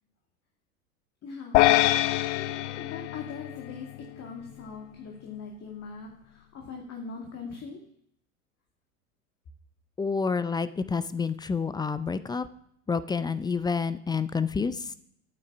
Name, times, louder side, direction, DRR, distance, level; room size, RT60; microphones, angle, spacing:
voice 1, 1.2-7.8, left 5 dB, 40° left, 0 dB, 2.1 m, -41 dB
sound 1, 1.5-4.0, left 16 dB, 60° left, 0.6 m, -24 dB
voice 2, 10.0-12.5 12.9-14.9, left 5 dB, 10° left, 14 dB, 0.4 m, -28 dB
8.7 x 8.7 x 5.9 m, 0.70 s
hypercardioid pair, 85°, 40 cm